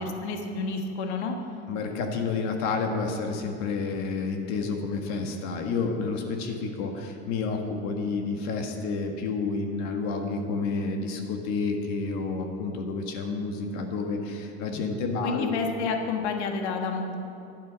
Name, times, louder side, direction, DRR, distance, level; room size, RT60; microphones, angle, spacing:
voice 1, 0.2-1.3 15.2-17.1, left 4 dB, 75° left, 4 dB, 1.5 m, -29 dB
voice 2, 1.7-15.5, left 4 dB, 55° left, 3 dB, 1.6 m, -30 dB
11.0 x 9.1 x 6.2 m, 2.8 s
hypercardioid pair, 105°, 34 cm